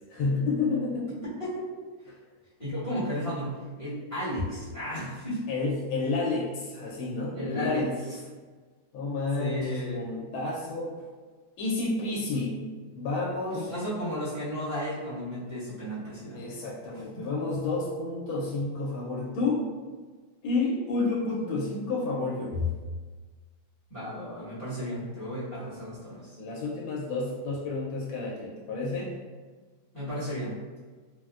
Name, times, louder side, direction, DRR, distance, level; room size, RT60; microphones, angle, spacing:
voice 1, 0.1-1.1 5.5-7.9 8.9-10.9 11.6-12.6 12.9-13.7 16.3-19.7 20.4-22.7 26.4-29.2, left 3 dB, 90° left, -4 dB, 1.4 m, -30 dB
voice 2, 1.4-1.7 2.6-5.4 7.3-7.9 9.4-10.0 13.5-16.5 17.1-17.2 23.9-26.4 29.9-30.5, equal, 25° left, -13 dB, 0.9 m, -34 dB
3.8 x 2.1 x 2.3 m, 1.4 s
omnidirectional pair, 2.1 m